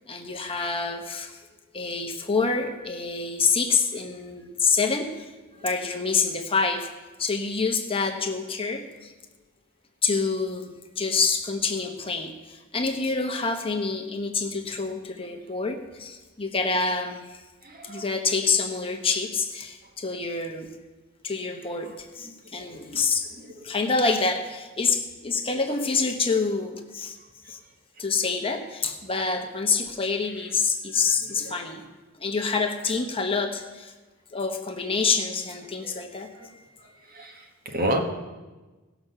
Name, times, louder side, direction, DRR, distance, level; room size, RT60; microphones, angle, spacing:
voice 1, 0.1-1.4 1.7-5.3 5.6-6.9 7.2-9.1 10.0-17.4 17.8-20.7 21.2-23.3 23.6-27.2 27.5-27.6 28.0-31.8 32.2-33.9 34.3-36.6, left 4 dB, 25° left, 4 dB, 1.0 m, -27 dB
voice 2, 17.6-18.1 22.5-23.0 23.4-23.5 31.4-31.5 35.8-36.0 36.3-36.5 37.1-38.0, right 1 dB, 40° right, 3 dB, 1.5 m, -31 dB
17.5 x 6.0 x 6.7 m, 1.2 s
head